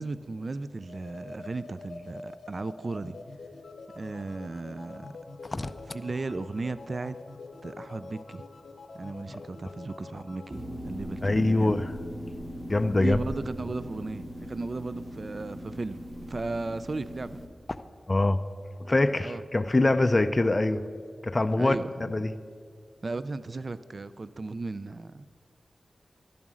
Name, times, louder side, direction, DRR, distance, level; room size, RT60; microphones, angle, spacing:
voice 1, 0.0-3.2 4.0-5.1 5.9-7.2 7.6-8.4 8.9-11.8 12.9-17.4 19.2-19.4 21.6-21.9 23.0-25.2, right 3 dB, 50° right, 14 dB, 0.4 m, -35 dB
sound 1, 0.8-10.6, left 3 dB, 80° left, 0.7 m, -46 dB
sound 2, 10.5-17.5, equal, 10° right, 0.9 m, -39 dB
voice 2, 11.2-11.9 12.7-13.2 18.1-18.4 18.8-20.8 21.2-21.8 22.1-22.3, left 2 dB, 30° left, 9 dB, 0.5 m, -24 dB
11.5 x 11.0 x 6.2 m, 2.1 s
wide cardioid pair, 85°, 0 cm